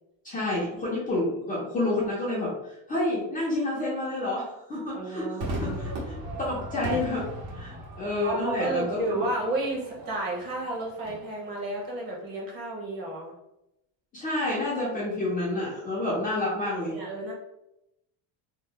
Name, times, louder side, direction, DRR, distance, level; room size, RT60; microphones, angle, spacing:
voice 1, 0.2-5.3 5.6-7.2 7.5-9.2 14.1-17.0, left 2 dB, 15° left, -7 dB, 0.6 m, -29 dB
voice 2, 4.9-5.9 8.2-13.3 16.0-16.1 16.9-17.3, right 2 dB, 40° right, -3 dB, 1.2 m, -32 dB
Crowd / Fireworks, 5.4-11.9, right 1 dB, 80° right, 1.5 m, -38 dB
3.0 x 2.1 x 3.7 m, 0.84 s
cardioid pair, 170°, 50 cm